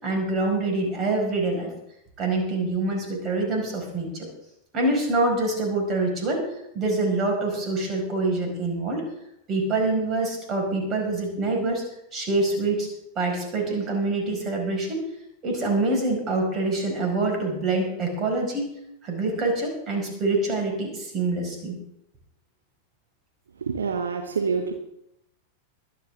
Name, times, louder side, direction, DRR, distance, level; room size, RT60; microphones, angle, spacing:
voice 1, 0.0-1.7 2.2-4.3 4.7-6.4 6.7-9.0 9.5-11.8 12.1-12.9 13.2-15.1 15.4-18.7 19.0-21.8, right 2 dB, 30° right, 1 dB, 5.2 m, -25 dB
voice 2, 23.6-24.7, right 5 dB, 70° right, 5 dB, 1.1 m, -26 dB
23.0 x 10.0 x 3.6 m, 0.81 s
figure-of-eight pair, 90°, 0 cm